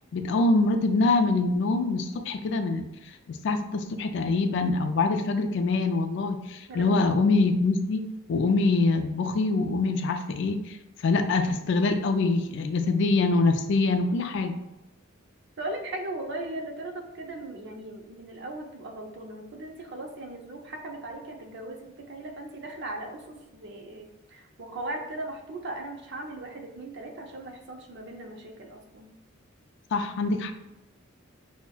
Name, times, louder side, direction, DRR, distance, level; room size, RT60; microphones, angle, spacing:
voice 1, 0.1-2.9 3.3-10.8 11.0-14.6 29.9-30.5, left 3 dB, 60° left, 7 dB, 0.4 m, -24 dB
voice 2, 6.7-7.1 15.6-29.1, right 2 dB, 60° right, 2 dB, 0.6 m, -38 dB
5.7 x 2.1 x 2.3 m, 0.96 s
head